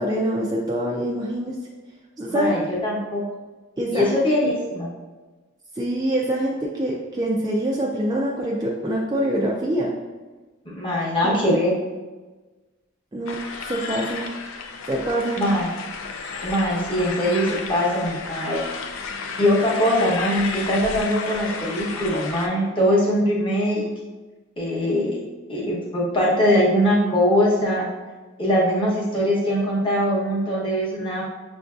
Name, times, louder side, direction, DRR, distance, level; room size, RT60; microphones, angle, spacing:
voice 1, 0.0-1.5 2.2-2.6 3.8-4.2 5.8-9.9 11.2-11.4 13.1-13.4 13.6-14.3 14.9-15.4, right 1 dB, 20° right, -3 dB, 0.3 m, -25 dB
voice 2, 2.3-3.2 3.9-4.9 10.7-11.7 15.4-15.7 16.4-18.6 19.4-23.9 24.6-25.2 25.5-27.9 28.4-31.2, equal, 25° left, -5 dB, 0.8 m, -22 dB
sound 1, 13.3-22.5, left 4 dB, 70° left, 0.4 m, -32 dB
6.1 x 2.5 x 2.3 m, 1.3 s
head